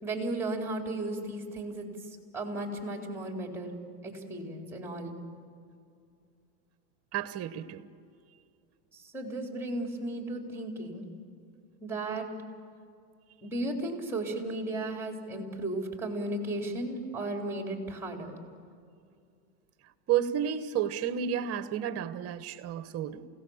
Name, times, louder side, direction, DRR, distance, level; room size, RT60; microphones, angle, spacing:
voice 1, 0.0-3.8 4.0-5.1 8.9-11.1 11.8-12.3 13.4-18.4, right 2 dB, 5° right, 3.9 m, -35 dB
voice 2, 7.1-7.9 20.1-23.3, right 9 dB, 30° right, 1.2 m, -31 dB
29.0 x 17.5 x 7.3 m
supercardioid pair, 130°, 45 cm